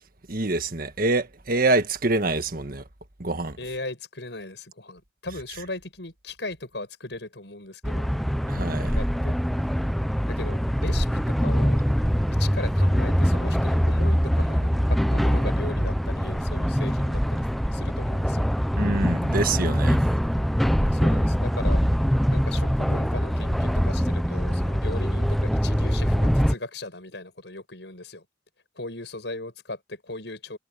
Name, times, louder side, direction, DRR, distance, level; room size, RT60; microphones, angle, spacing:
voice 1, 0.3-2.8 3.2-3.6 8.5-9.0 18.8-20.0, right 2 dB, 55° right, 1.6 m, -25 dB
voice 2, 3.6-8.1 9.0-9.4 10.3-11.8 12.4-17.5 17.7-18.5 20.9-21.8 22.3-28.2 28.8-30.6, left 2 dB, 75° left, 7.0 m, -37 dB
sound 1, 7.8-26.5, equal, ahead, 0.5 m, -23 dB
head